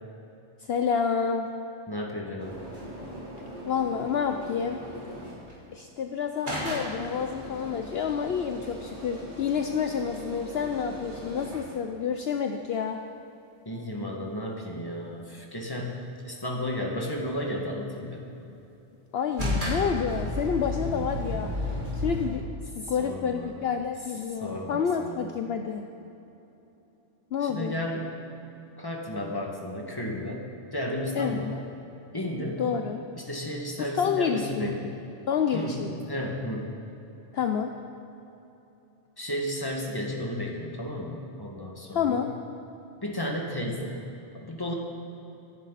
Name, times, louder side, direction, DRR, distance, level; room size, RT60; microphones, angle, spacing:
voice 1, 0.6-1.5 3.6-4.8 5.7-13.0 19.1-22.4 22.8-25.8 27.3-27.8 31.1-31.6 32.6-33.0 33.8-34.9 35.3-36.1 37.3-37.7 41.9-42.3, left 7 dB, 60° left, 5 dB, 0.9 m, -29 dB
voice 2, 1.9-2.6 13.7-16.0 16.2-18.2 23.0-23.5 24.4-25.4 27.4-28.2 28.8-31.5 32.1-32.6 33.2-34.8 35.5-35.8 36.1-36.7 39.2-42.2 43.0-44.0 44.4-44.7, left 1 dB, 20° left, 0 dB, 2.0 m, -33 dB
sound 1, 2.4-5.5 6.4-11.7 19.4-22.3, left 1 dB, 40° right, 3.8 m, -35 dB
24.0 x 11.0 x 4.1 m, 3.0 s
omnidirectional pair, 1.2 m